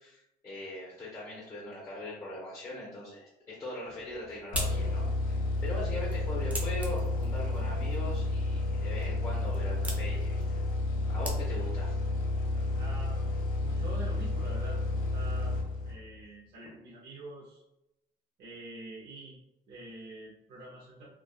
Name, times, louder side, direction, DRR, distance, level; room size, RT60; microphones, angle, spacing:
voice 1, 0.0-10.6 11.1-12.0 12.6-12.7, left 1 dB, 20° left, -5 dB, 0.8 m, -41 dB
sound 1, 3.9-11.8, right 1 dB, 10° right, 0.5 m, -44 dB
sound 2, 4.5-16.2, left 2 dB, 55° left, 0.7 m, -31 dB
voice 2, 12.8-13.2 13.6-15.5 15.8-17.6 18.4-19.4 19.7-21.1, right 2 dB, 65° right, -5 dB, 0.7 m, -46 dB
2.5 x 2.3 x 2.4 m, 0.85 s
cardioid pair, 110°, 17 cm